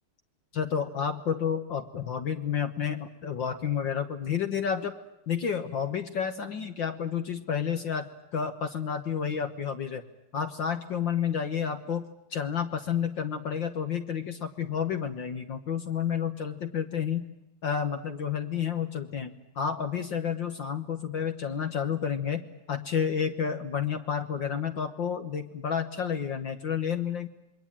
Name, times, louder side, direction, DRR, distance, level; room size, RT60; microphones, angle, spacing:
voice 1, 0.5-4.9 5.3-10.0 10.3-12.0 12.3-17.2 17.6-27.3, left 7 dB, 55° left, 8 dB, 1.4 m, -30 dB
27.5 x 21.5 x 8.9 m, 0.86 s
omnidirectional pair, 3.5 m